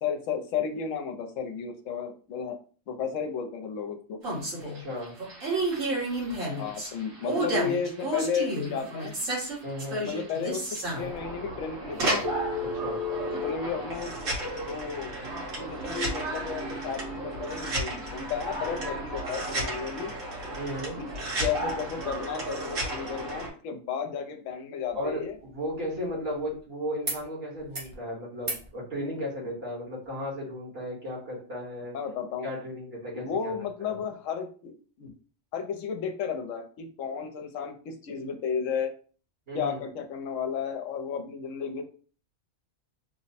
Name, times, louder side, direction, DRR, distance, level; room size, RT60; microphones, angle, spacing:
voice 1, 0.0-2.6 2.9-4.2 4.6-4.7 6.6-9.3 10.0-10.6 10.9-12.3 13.2-14.1 14.7-15.2 15.6-20.1 21.0-21.1 21.4-25.4 31.9-32.5 33.1-35.1 35.5-38.9 39.5-41.8, left 6 dB, 70° left, 6 dB, 1.0 m, -33 dB
sound 1, 4.2-23.5, right 1 dB, 70° right, 1.6 m, -32 dB
voice 2, 4.7-5.1 9.6-10.1 12.6-13.0 20.5-21.0 24.9-31.9 32.4-33.5 33.8-34.0 39.5-39.8, equal, 50° right, -4 dB, 1.3 m, -35 dB
sound 2, 24.9-26.6 27.0-27.2 27.5-28.0 28.4-28.7 30.0-30.1, right 2 dB, 25° right, 0.7 m, -39 dB
3.2 x 2.0 x 4.0 m, 0.40 s
omnidirectional pair, 1.4 m